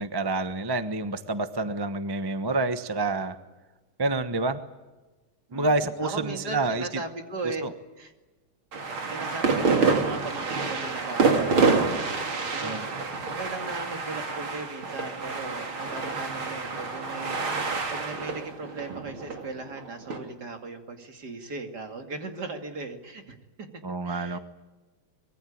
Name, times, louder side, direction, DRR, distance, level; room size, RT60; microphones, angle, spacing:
voice 1, 0.0-3.4 4.0-4.6 5.5-6.8 7.6-7.7 12.6-13.0 23.8-24.4, right 2 dB, 20° right, 10 dB, 0.7 m, -28 dB
voice 2, 5.5-7.7 8.0-8.1 9.1-11.9 12.4-12.8 13.3-23.7 24.0-24.4, right 3 dB, 50° right, 5 dB, 3.0 m, -38 dB
sound 1, 8.7-20.2, right 4 dB, 75° right, 3.6 m, -27 dB
25.0 x 22.0 x 8.7 m, 1.2 s
omnidirectional pair, 2.3 m